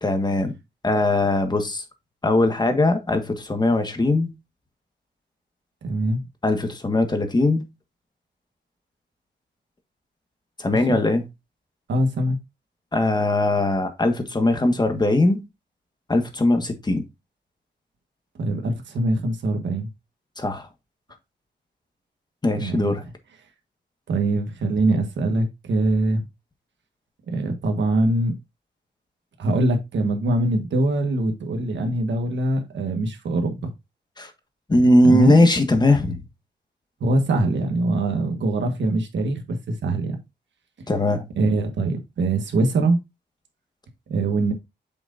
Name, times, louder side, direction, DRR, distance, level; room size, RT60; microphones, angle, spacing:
voice 1, 0.0-0.5 0.8-1.8 2.2-4.3 6.4-7.6 10.6-11.2 12.9-15.4 16.1-17.0 20.4-20.7 22.4-23.0 34.2-34.3 34.7-36.2 40.9-41.2, left 2 dB, 20° left, 1.5 m, -20 dB
voice 2, 5.8-6.2 10.7-11.0 11.9-12.4 18.4-19.9 22.5-22.9 24.1-26.3 27.3-28.4 29.4-33.7 35.0-35.5 37.0-40.2 41.4-43.0 44.1-44.5, right 2 dB, 75° right, 1.5 m, -23 dB
7.7 x 6.1 x 2.6 m
wide cardioid pair, 125°, 19 cm